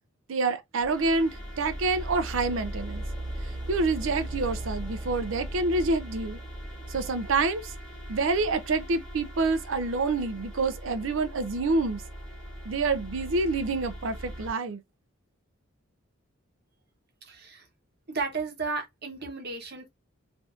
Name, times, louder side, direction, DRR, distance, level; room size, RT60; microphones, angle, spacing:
voice 1, 0.3-3.0 3.7-6.4 6.9-7.7 8.1-12.0 12.7-14.8, right 3 dB, 70° right, 0.5 m, -27 dB
sound 1, 0.8-14.5, right 1 dB, 5° left, 0.9 m, -38 dB
voice 2, 17.2-17.7 18.1-19.9, right 4 dB, 50° right, 0.9 m, -34 dB
3.4 x 2.6 x 2.5 m
head